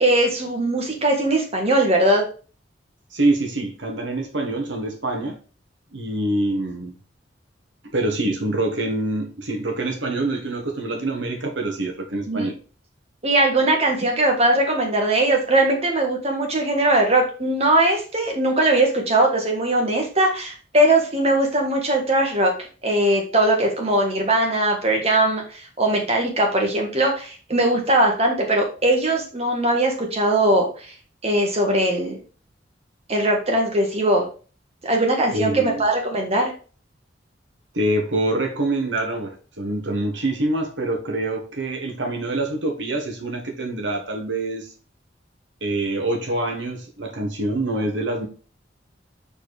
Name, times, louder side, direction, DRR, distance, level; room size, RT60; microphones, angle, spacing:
voice 1, 0.0-2.2 12.3-12.5 13.2-22.5 22.8-30.9 31.2-32.2 33.1-34.3 34.8-36.5, right 1 dB, 35° right, 1.6 m, -20 dB
voice 2, 3.1-5.4 5.9-6.9 7.9-12.6 35.3-35.8 37.7-44.7 45.6-48.3, right 2 dB, 85° right, 1.6 m, -25 dB
4.7 x 4.4 x 4.8 m
head